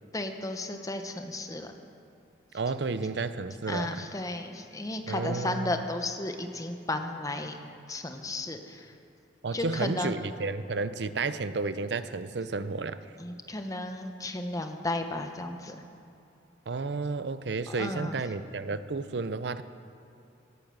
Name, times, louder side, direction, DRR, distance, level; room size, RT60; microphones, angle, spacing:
voice 1, 0.1-1.7 3.7-7.6 7.9-8.9 9.5-10.1 13.2-15.8 17.7-18.2, left 2 dB, 20° left, 6 dB, 1.0 m, -34 dB
voice 2, 2.5-4.1 5.1-5.7 9.4-13.0 16.7-19.6, right 4 dB, 65° right, 13 dB, 0.6 m, -32 dB
18.0 x 8.7 x 7.9 m, 2.7 s
head